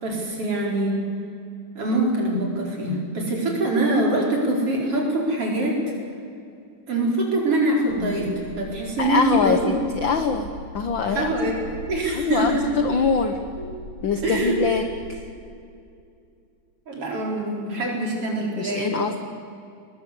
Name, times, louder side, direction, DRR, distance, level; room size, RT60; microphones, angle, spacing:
voice 1, 0.0-1.0 1.8-5.8 6.9-9.8 11.1-12.6 13.6-13.7 14.2-14.6 16.9-19.2, right 1 dB, 45° right, -1 dB, 5.4 m, -24 dB
sound 1, 7.9-15.1, left 1 dB, 80° left, 9.0 m, -40 dB
voice 2, 9.0-11.3 12.1-13.4 14.0-14.8 15.1-15.3 18.6-19.2, left 5 dB, 65° left, 7 dB, 1.2 m, -24 dB
21.5 x 20.5 x 8.4 m, 2.5 s
omnidirectional pair, 3.7 m